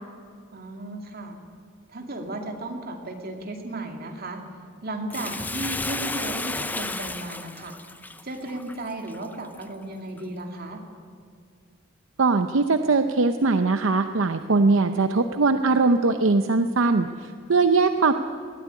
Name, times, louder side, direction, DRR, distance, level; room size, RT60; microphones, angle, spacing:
voice 1, 0.5-1.4 1.9-4.4 4.8-7.8 8.2-10.8, right 2 dB, 45° right, 3 dB, 2.4 m, -35 dB
Bathtub (filling or washing), 5.1-9.6 10.2-10.3, left 2 dB, 10° left, 0.5 m, -33 dB
voice 2, 12.2-18.1, right 3 dB, 70° right, 8 dB, 0.7 m, -21 dB
20.5 x 14.0 x 9.7 m, 2.3 s
head